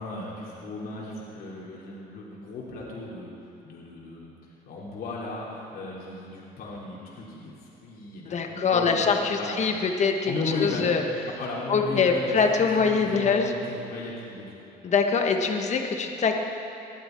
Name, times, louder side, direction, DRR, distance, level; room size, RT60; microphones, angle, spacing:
voice 1, 0.0-9.0 9.4-9.6 10.2-10.9 11.4-12.5 12.8-14.4, left 3 dB, 65° left, -5 dB, 3.1 m, -36 dB
voice 2, 8.3-10.3 10.6-11.0 11.7-13.5 14.8-16.4, left 5 dB, 45° left, 4 dB, 1.5 m, -23 dB
19.0 x 12.0 x 4.6 m, 2.7 s
cardioid pair, 110°, 17 cm